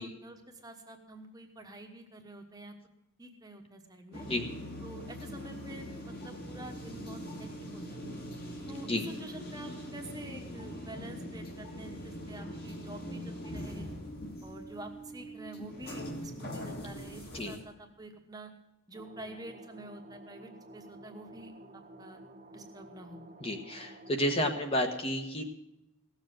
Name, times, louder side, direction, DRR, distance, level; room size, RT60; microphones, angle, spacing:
voice 1, 0.0-2.7 3.2-4.3 4.8-7.5 7.7-8.0 8.7-8.9 9.2-13.9 14.4-18.5 18.9-22.2 22.5-23.2, right 1 dB, 15° right, 4 dB, 1.1 m, -48 dB
sound 1, 4.1-17.6, equal, 45° left, 2.4 m, -42 dB
sound 2, 18.9-24.2, right 1 dB, 30° right, 1.0 m, -52 dB
voice 2, 23.4-25.4, equal, 25° left, 5 dB, 1.1 m, -31 dB
16.5 x 7.3 x 7.6 m, 0.90 s
head